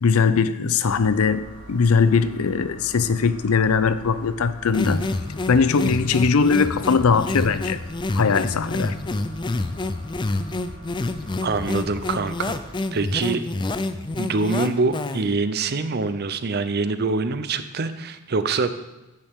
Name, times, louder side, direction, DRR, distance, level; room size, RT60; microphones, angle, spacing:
voice 1, 0.0-5.1 5.5-7.8 8.2-9.0, left 5 dB, 85° left, 0.5 m, -20 dB
sound 1, 0.8-12.8, right 1 dB, 25° right, 3.4 m, -44 dB
sound 2, 4.7-15.4, left 2 dB, 20° left, 0.4 m, -28 dB
voice 2, 11.4-12.6 12.9-13.4 14.2-18.7, right 3 dB, 50° right, 0.6 m, -24 dB
10.5 x 8.8 x 3.6 m
head